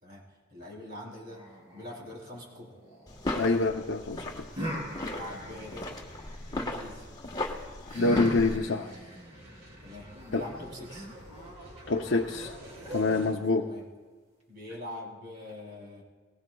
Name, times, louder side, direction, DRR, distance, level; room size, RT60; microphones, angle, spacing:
voice 1, 0.0-2.8 4.9-5.9 6.5-7.1 9.8-11.1 13.6-13.9 14.5-16.0, left 1 dB, 50° right, -3 dB, 3.6 m, -43 dB
sound 1, 1.3-3.5 4.5-6.6 7.9-13.5, equal, 30° right, 2.9 m, -41 dB
sound 2, 3.1-8.6, left 2 dB, 20° left, 1.3 m, -37 dB
voice 2, 3.4-4.3 7.9-8.9 10.3-10.4 11.9-12.6 12.9-13.7, left 3 dB, 70° left, 1 dB, 0.6 m, -26 dB
sound 3, 7.8-13.3, equal, 75° right, 3.7 m, -50 dB
21.5 x 18.5 x 2.3 m, 1.4 s
head